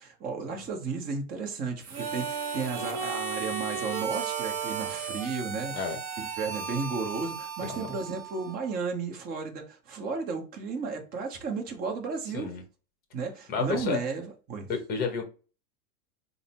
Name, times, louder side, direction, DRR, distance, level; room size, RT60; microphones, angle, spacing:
voice 1, 0.0-5.7 6.4-12.5 13.1-14.7, right 4 dB, 20° right, 0.7 m, -33 dB
Harmonica, 1.8-8.7, right 6 dB, 35° right, 1.3 m, -35 dB
voice 2, 7.6-8.0 12.3-12.6 13.5-14.0 14.7-15.3, left 5 dB, 20° left, 0.8 m, -31 dB
3.8 x 2.0 x 4.1 m
supercardioid pair, 150°, 47 cm